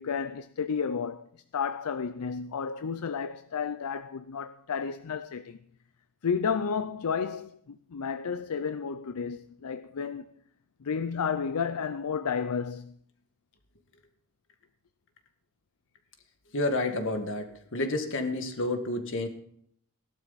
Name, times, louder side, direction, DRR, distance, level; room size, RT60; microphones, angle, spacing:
voice 1, 0.0-5.6 6.2-10.3 10.8-13.0, left 6 dB, 80° left, 0.5 m, -32 dB
voice 2, 16.5-19.3, left 2 dB, 60° left, 1.8 m, -30 dB
17.0 x 12.0 x 4.1 m
head